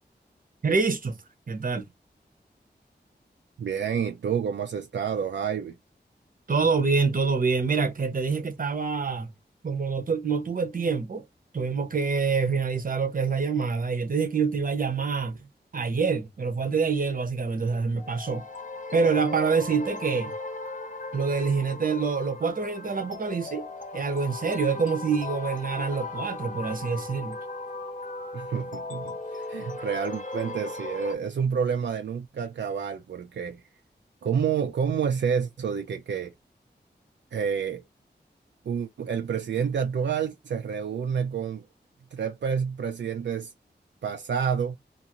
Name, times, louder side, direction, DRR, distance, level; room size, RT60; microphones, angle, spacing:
voice 1, 0.6-1.2 1.5-1.8 6.5-9.3 9.6-11.2 11.5-15.5 15.7-18.4 18.9-20.3 21.1-23.7 23.9-27.4, right 5 dB, 50° right, 0.8 m, -26 dB
voice 2, 3.6-5.8 28.3-33.6 34.2-36.3 37.3-37.8 38.7-41.7 42.1-43.5 44.0-44.8, right 7 dB, 80° right, 0.4 m, -29 dB
sound 1, 18.0-31.2, left 2 dB, 45° left, 0.7 m, -37 dB
2.6 x 2.5 x 2.9 m
wide cardioid pair, 60°, 18 cm